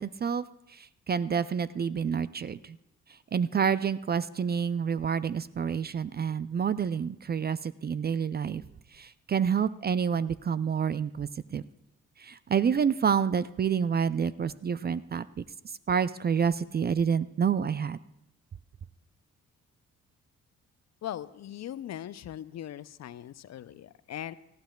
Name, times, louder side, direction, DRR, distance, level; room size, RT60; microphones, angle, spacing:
voice 1, 0.0-2.8 3.3-8.6 8.9-11.6 12.2-18.0, right 7 dB, 30° right, 16 dB, 0.4 m, -28 dB
voice 2, 21.0-24.3, left 11 dB, 50° left, 16 dB, 0.5 m, -40 dB
18.5 x 14.0 x 2.3 m, 0.83 s
hypercardioid pair, 45°, 35 cm